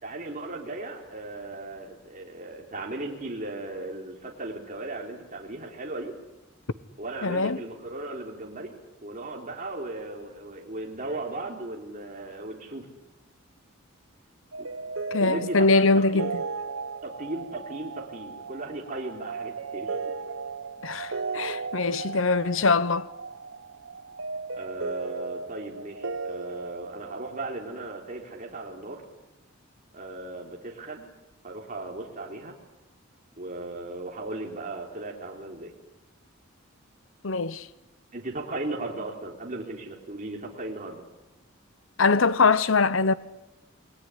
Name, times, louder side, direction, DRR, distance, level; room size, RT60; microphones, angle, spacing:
voice 1, 0.0-6.1 7.0-12.9 14.6-14.7 15.2-15.7 15.9-16.3 17.0-20.0 24.5-29.0 29.9-31.1 31.4-32.5 33.4-35.7 38.1-41.0, right 2 dB, 40° right, 3.9 m, -37 dB
voice 2, 7.2-7.6 15.1-16.4 20.8-23.1 37.2-37.7 42.0-43.1, left 3 dB, 70° left, 1.0 m, -22 dB
sound 1, 14.5-27.5, right 4 dB, 70° right, 1.0 m, -36 dB
28.0 x 21.0 x 9.9 m
head